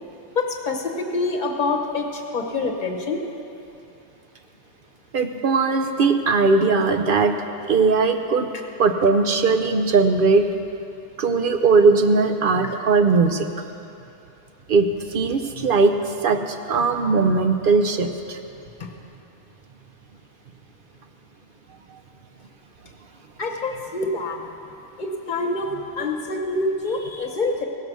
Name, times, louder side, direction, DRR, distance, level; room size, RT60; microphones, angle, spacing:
voice 1, 0.3-3.2 23.4-24.4 25.0-27.7, left 3 dB, 40° left, 3 dB, 1.1 m, -26 dB
voice 2, 5.1-7.3 7.6-8.5 8.8-10.4 11.2-13.5 14.7-18.4, right 4 dB, 55° right, 7 dB, 0.7 m, -19 dB
16.5 x 6.7 x 6.1 m, 2.7 s
omnidirectional pair, 1.2 m